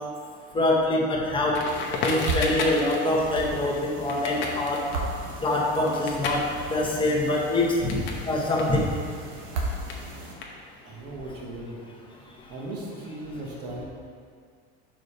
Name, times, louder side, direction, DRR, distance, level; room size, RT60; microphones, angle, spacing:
voice 1, 0.5-1.6 2.0-4.8 5.4-6.4 6.7-8.0 8.3-8.9, left 2 dB, 15° left, -3 dB, 1.0 m, -24 dB
Crackle, 1.5-8.2 8.5-11.0, left 3 dB, 35° left, 0.8 m, -34 dB
sound 1, 1.6-10.3, right 2 dB, 75° right, 1.2 m, -36 dB
voice 2, 10.8-11.8 12.5-13.8, right 1 dB, 50° right, -3 dB, 1.4 m, -37 dB
4.8 x 4.0 x 5.6 m, 2.1 s
supercardioid pair, 130°, 32 cm